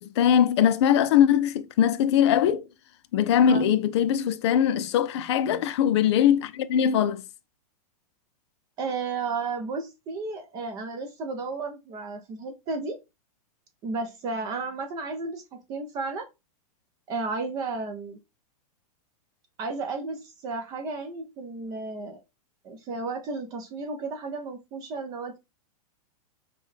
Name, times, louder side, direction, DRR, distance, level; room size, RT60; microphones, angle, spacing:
voice 1, 0.0-2.6 3.1-7.2, left 9 dB, 45° left, 0.4 m, -21 dB
voice 2, 8.8-13.0 13.8-16.3 17.1-18.2 19.6-22.2 22.6-25.4, right 3 dB, 20° right, 0.4 m, -33 dB
5.2 x 2.2 x 3.1 m
supercardioid pair, 165°, 19 cm